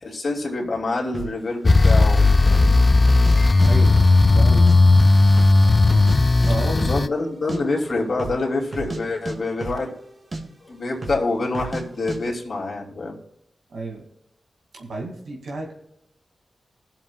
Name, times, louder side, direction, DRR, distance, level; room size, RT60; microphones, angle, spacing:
voice 1, 0.0-2.7 3.4-3.7 6.7-9.9 10.6-13.2, left 2 dB, 65° left, 0 dB, 2.7 m, -26 dB
sound 1, 1.1-1.4 1.8-1.9 2.5-2.8 3.1-3.7 4.0-4.8 5.0-5.1 5.4-6.2 6.4-6.5 6.8-7.0 7.3-7.6 8.1-8.4 8.7-9.0 9.2-10.0 10.3-10.4 11.0-11.2 11.5-11.8 12.1-12.2, right 3 dB, 50° right, 1.9 m, -32 dB
sound 2, 1.6-7.1, left 3 dB, 40° left, 0.5 m, -15 dB
voice 2, 3.6-4.6 6.4-6.9 13.7-14.1 14.7-15.7, right 2 dB, 85° right, 1 dB, 2.3 m, -31 dB
20.5 x 7.4 x 2.3 m, 0.77 s
cardioid pair, 50°, 0 cm